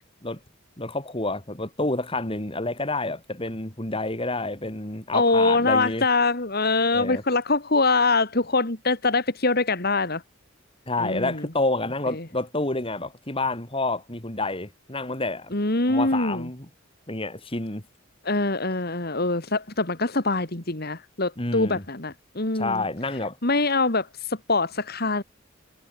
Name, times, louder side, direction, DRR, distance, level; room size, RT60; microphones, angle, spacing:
voice 1, 0.8-6.0 6.9-7.2 10.9-15.5 15.9-16.7 17.1-17.8 21.4-21.8 22.5-23.4, left 2 dB, 25° left, 3.7 m, -28 dB
voice 2, 5.1-10.2 11.0-11.5 12.1-12.3 15.5-16.5 18.2-22.8 23.4-25.2, left 3 dB, 50° left, 2.5 m, -24 dB
head